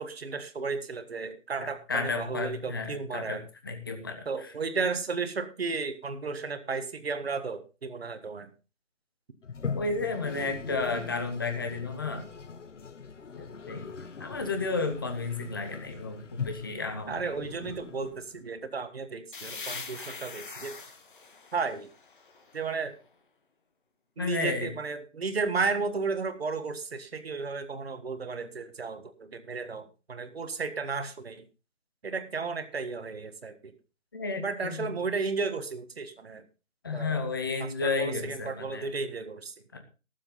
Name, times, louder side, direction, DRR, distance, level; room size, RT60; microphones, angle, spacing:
voice 1, 0.0-3.4 4.2-8.5 17.1-20.8 21.5-21.9 22.5-22.9 24.2-31.4 32.0-33.7 34.4-36.4 36.9-37.2 37.6-39.5, right 4 dB, 50° right, 10 dB, 1.7 m, -33 dB
voice 2, 1.6-3.4 3.6-4.5 9.7-12.3 13.3-13.9 14.2-17.2 24.2-24.7 34.1-34.9 36.8-38.9 39.7-39.8, left 3 dB, 15° left, 6 dB, 1.1 m, -32 dB
Toilet flush, 9.4-18.5, left 5 dB, 65° left, 1.0 m, -41 dB
sound 1, 19.3-22.9, left 4 dB, 40° left, 1.6 m, -43 dB
18.5 x 7.5 x 3.9 m, 0.33 s
figure-of-eight pair, 170°, 40 cm